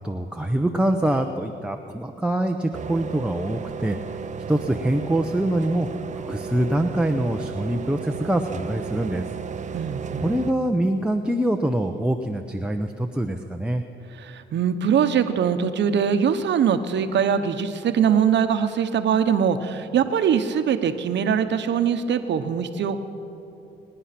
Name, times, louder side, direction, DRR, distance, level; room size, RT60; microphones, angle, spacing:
voice 1, 0.0-4.0 4.5-5.9 6.2-9.2 10.2-13.8, right 1 dB, 5° right, 3 dB, 0.8 m, -24 dB
sound 1, 2.7-10.5, right 6 dB, 35° right, 0.7 m, -34 dB
voice 2, 9.7-10.3 14.2-23.0, right 7 dB, 65° right, 9 dB, 1.1 m, -22 dB
24.0 x 10.0 x 6.0 m, 2.8 s
cardioid pair, 90°, 20 cm